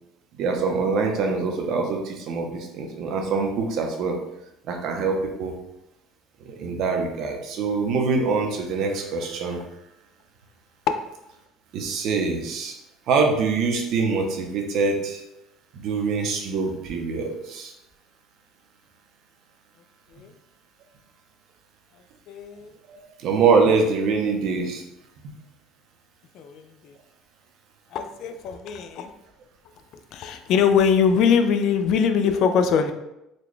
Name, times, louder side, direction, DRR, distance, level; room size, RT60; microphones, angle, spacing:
voice 1, 0.4-4.2 4.7-5.6 6.4-9.6 11.7-12.7 13.1-15.2 15.7-17.7 22.9-24.8, right 4 dB, 55° right, 3 dB, 0.6 m, -24 dB
voice 2, 22.3-22.7 26.3-26.9 27.9-29.1 30.1-32.9, left 6 dB, 55° left, 8 dB, 0.3 m, -22 dB
4.0 x 2.2 x 3.1 m, 0.88 s
cardioid pair, 150°, 0 cm